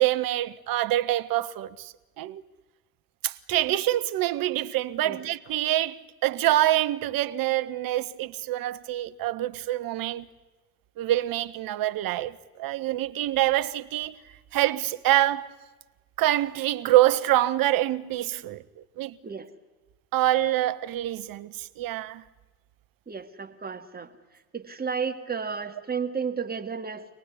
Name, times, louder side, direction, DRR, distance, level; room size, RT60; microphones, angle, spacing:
voice 1, 0.0-2.4 3.2-10.3 11.0-14.2 14.5-15.5 16.2-18.6 19.0-19.2 20.1-22.2, right 14 dB, 50° right, 1.3 m, -25 dB
voice 2, 23.1-24.1 24.5-27.1, right 6 dB, 20° right, 2.3 m, -32 dB
26.5 x 18.5 x 9.9 m
hypercardioid pair, 75°, 43 cm